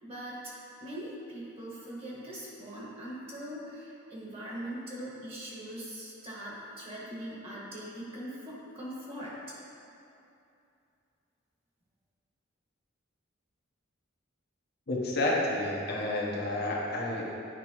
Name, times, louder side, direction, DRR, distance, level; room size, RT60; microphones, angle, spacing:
voice 1, 0.0-9.6, right 1 dB, 30° right, -6 dB, 1.5 m, -41 dB
voice 2, 14.9-17.2, left 1 dB, 55° left, -4 dB, 1.0 m, -30 dB
9.3 x 4.6 x 3.0 m, 2.7 s
head